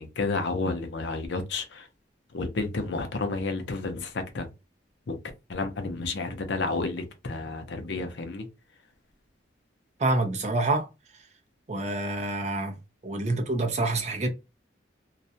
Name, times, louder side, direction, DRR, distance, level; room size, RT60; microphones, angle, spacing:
voice 1, 0.0-1.9 2.3-4.5 5.1-5.2 5.5-8.5, left 3 dB, 65° left, 0.5 m, -31 dB
voice 2, 10.0-10.9 11.7-12.8 13.0-14.3, right 2 dB, 35° right, 0.4 m, -27 dB
2.3 x 2.1 x 2.6 m
head